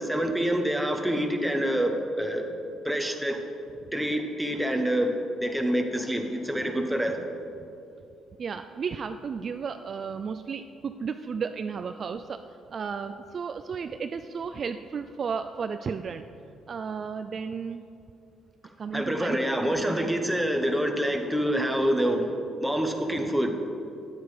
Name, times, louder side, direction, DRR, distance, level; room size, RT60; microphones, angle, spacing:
voice 1, 0.0-2.4 2.8-3.4 3.9-5.1 5.4-7.2 18.9-22.3 22.6-23.5, equal, 5° right, 3 dB, 1.1 m, -26 dB
voice 2, 8.4-12.4 12.7-16.2 16.7-17.8 18.8-19.4 19.8-20.1, right 6 dB, 40° right, 8 dB, 0.4 m, -33 dB
13.0 x 9.9 x 5.1 m, 2.7 s
cardioid pair, 140°, 0 cm